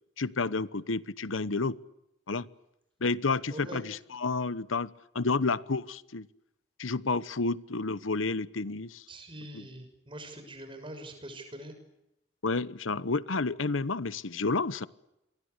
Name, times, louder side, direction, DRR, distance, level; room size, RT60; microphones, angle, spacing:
voice 1, 0.2-1.8 2.3-2.5 3.0-4.9 5.1-6.3 6.8-9.0 9.5-9.6 12.4-14.9, left 3 dB, 90° left, 17 dB, 1.1 m, -30 dB
voice 2, 3.5-3.8 9.1-11.7, right 1 dB, 25° right, 7 dB, 6.5 m, -43 dB
29.0 x 23.5 x 8.2 m, 0.88 s
head